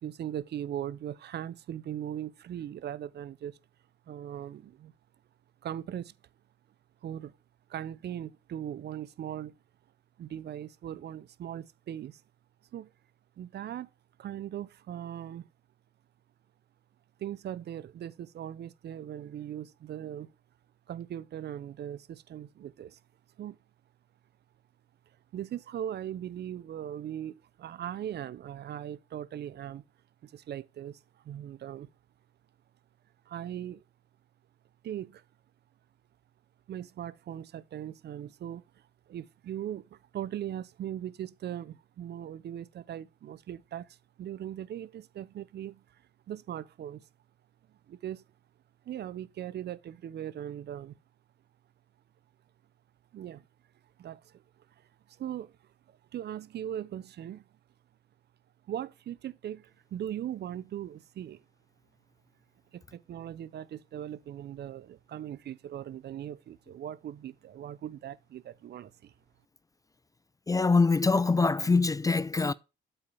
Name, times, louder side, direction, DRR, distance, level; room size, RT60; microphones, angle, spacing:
voice 1, 0.0-3.6 4.1-4.9 5.6-6.1 7.0-7.3 7.7-9.5 10.2-12.2 12.7-12.9 13.4-13.9 14.2-15.5 17.2-20.3 20.9-23.0 23.4-23.6 25.3-29.8 30.2-31.0 31.2-31.9 33.3-33.8 34.8-35.2 36.7-38.6 39.1-45.8 46.3-47.1 47.9-48.2 48.9-50.9 53.1-53.4 54.0-54.4 55.1-55.5 55.9-57.5 58.7-61.4 62.7-69.1, right 10 dB, 60° right, 0.6 m, -39 dB
voice 2, 70.5-72.5, left 4 dB, 15° left, 0.4 m, -24 dB
8.0 x 5.6 x 3.4 m
cardioid pair, 90°, 20 cm